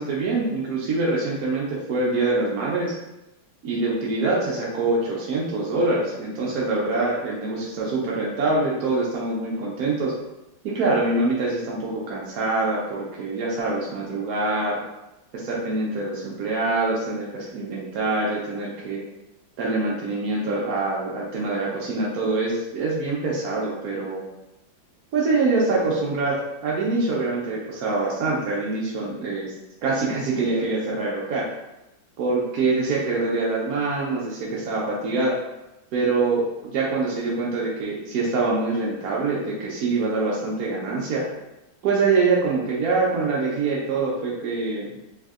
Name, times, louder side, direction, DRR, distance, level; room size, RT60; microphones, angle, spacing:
voice 1, 0.0-3.0 3.6-10.1 10.6-14.8 15.3-19.0 19.6-24.2 25.1-29.5 29.8-31.5 32.2-35.3 35.9-41.2 41.8-44.9, right 3 dB, 70° right, -5 dB, 0.9 m, -24 dB
4.0 x 2.6 x 2.4 m, 0.93 s
omnidirectional pair, 2.1 m